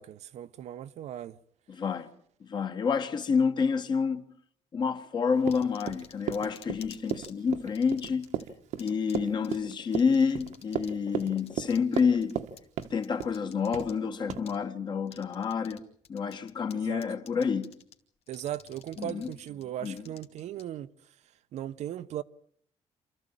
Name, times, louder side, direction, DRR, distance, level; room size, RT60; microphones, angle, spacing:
voice 1, 0.0-1.3 16.7-17.0 18.3-20.9 21.5-22.2, right 11 dB, 70° right, 0.9 m, -38 dB
voice 2, 1.7-2.1 2.4-4.2 4.7-8.3 8.8-12.4 12.9-15.8 16.1-17.8 19.0-19.3 19.8-20.0, left 6 dB, 40° left, 1.7 m, -28 dB
Run, 5.4-12.5 12.8-13.4 13.7-14.0 14.3-14.4, right 10 dB, 85° right, 1.7 m, -35 dB
sound 1, 5.5-7.3 7.7-8.4 8.8-9.2 9.4-9.5 9.9-10.9 11.2-13.9 14.5-14.6 15.1-15.8 16.0-16.7 17.0-17.9 18.3-20.6, left 8 dB, 55° left, 2.4 m, -51 dB
27.5 x 14.0 x 8.9 m
cardioid pair, 155°, 12 cm